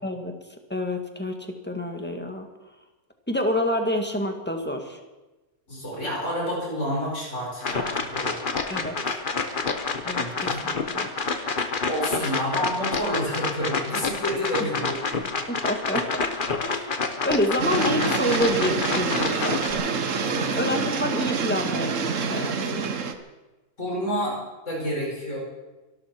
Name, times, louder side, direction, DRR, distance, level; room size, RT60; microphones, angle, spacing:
voice 1, 0.0-0.4 0.7-2.5 3.3-5.0 8.7-9.0 10.0-11.1 12.4-12.5 14.6-14.7 15.5-16.3 16.6-16.9 17.2-19.9 20.6-22.9, left 1 dB, 5° left, 4 dB, 1.7 m, -28 dB
voice 2, 5.7-8.3 10.1-10.6 11.8-15.3 20.2-20.8 23.8-24.4 24.7-25.4, equal, 55° left, -3 dB, 6.1 m, -29 dB
sound 1, 7.6-19.7, left 4 dB, 40° left, 1.3 m, -28 dB
sound 2, 17.6-23.1, right 5 dB, 60° right, 1.5 m, -27 dB
24.0 x 13.0 x 4.5 m, 1.1 s
omnidirectional pair, 1.5 m